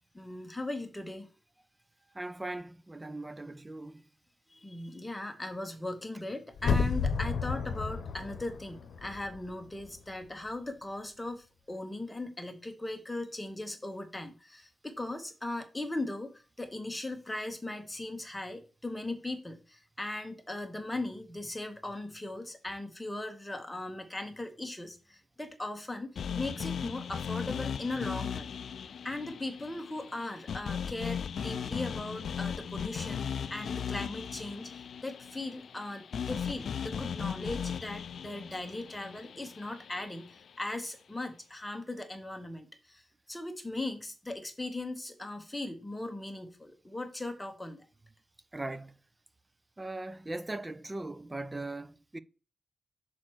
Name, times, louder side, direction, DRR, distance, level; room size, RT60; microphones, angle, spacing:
voice 1, 0.1-1.3 4.5-28.5 29.0-47.8, left 2 dB, 10° left, 1.2 m, -39 dB
voice 2, 2.1-4.0 48.5-48.9 49.8-52.2, right 2 dB, 15° right, 0.5 m, -39 dB
sound 1, 6.6-9.5 9.8-9.9, left 5 dB, 80° left, 0.8 m, -31 dB
sound 2, 26.2-40.3, left 7 dB, 60° left, 0.3 m, -37 dB
6.4 x 4.4 x 6.2 m
wide cardioid pair, 150°, 0 cm